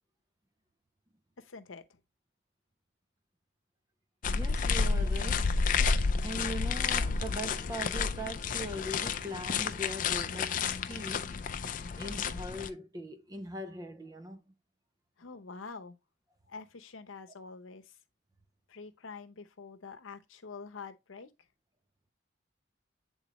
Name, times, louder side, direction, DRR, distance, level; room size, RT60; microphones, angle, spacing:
voice 1, 1.4-2.0 15.2-16.0 16.5-18.0 18.7-21.3, left 4 dB, 85° left, 0.8 m, -46 dB
sound 1, 4.2-12.7, left 5 dB, 40° left, 0.4 m, -31 dB
voice 2, 4.2-5.6 6.2-11.4 12.0-14.6, equal, 20° right, 0.4 m, -41 dB
8.2 x 3.8 x 3.0 m
head